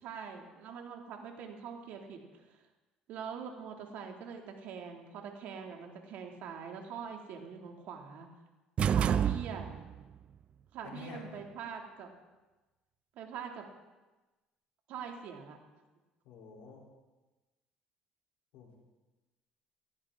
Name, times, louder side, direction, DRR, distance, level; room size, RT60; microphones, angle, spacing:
voice 1, 0.0-2.6 3.1-8.3 8.9-9.7 10.7-12.1 13.1-13.7 14.9-15.6, right 6 dB, 70° right, 2 dB, 2.4 m, -43 dB
sound 1, 8.8-10.0, right 8 dB, 45° right, 0.4 m, -29 dB
voice 2, 10.8-11.5 16.3-16.8 18.5-18.7, left 4 dB, 80° left, -2 dB, 3.5 m, -49 dB
17.0 x 14.5 x 3.7 m, 1.1 s
cardioid pair, 105°, 3 cm